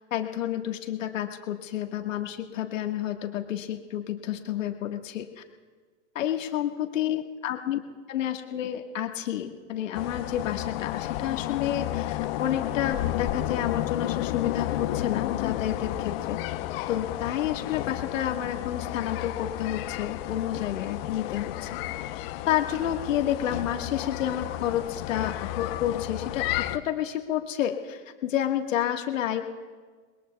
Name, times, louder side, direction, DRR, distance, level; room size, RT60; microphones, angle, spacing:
voice 1, 0.1-5.4 6.2-7.8 8.1-16.4 16.9-21.8 22.5-29.4, left 11 dB, 70° left, 4 dB, 1.7 m, -30 dB
sound 1, 9.9-26.8, left 14 dB, 45° left, 0.9 m, -32 dB
27.5 x 21.0 x 2.3 m, 1.5 s
hypercardioid pair, 115°, 40 cm